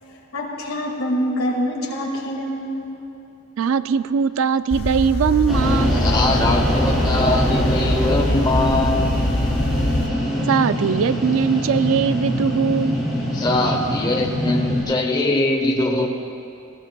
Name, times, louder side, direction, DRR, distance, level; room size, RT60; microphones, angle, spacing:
voice 1, 0.0-3.0, equal, 75° left, -1 dB, 2.1 m, -26 dB
voice 2, 3.6-6.1 10.5-13.0, right 6 dB, 65° right, 13 dB, 0.3 m, -20 dB
sound 1, 4.7-10.1, left 1 dB, 45° left, 0.9 m, -23 dB
sound 2, 5.5-14.8, equal, ahead, 3.5 m, -24 dB
voice 3, 6.0-9.1 13.3-16.1, left 2 dB, 20° left, 2 dB, 0.7 m, -22 dB
19.0 x 15.5 x 2.3 m, 2.7 s
head